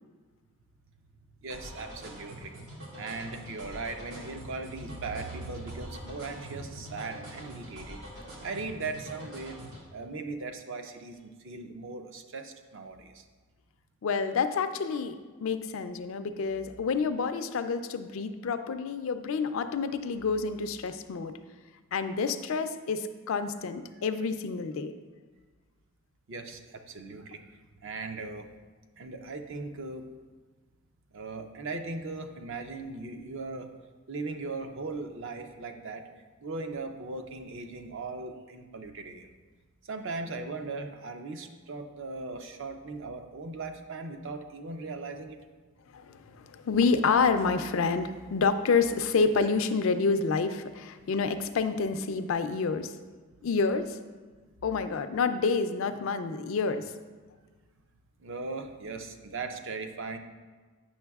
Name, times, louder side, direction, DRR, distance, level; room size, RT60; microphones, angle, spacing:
voice 1, 1.4-2.5 2.9-9.6 9.9-13.2 26.3-27.4 27.8-28.5 29.0-30.1 31.1-33.7 34.1-36.0 36.4-39.3 39.8-45.4 58.2-60.2, right 3 dB, 55° right, 6 dB, 0.5 m, -38 dB
sound 1, 1.5-9.8, equal, 90° right, 2.1 m, -44 dB
voice 2, 14.0-21.4 21.9-24.9 45.9-52.9 53.4-54.0 54.6-56.9, left 4 dB, 60° left, 9 dB, 0.4 m, -28 dB
8.6 x 6.1 x 2.3 m, 1.4 s
head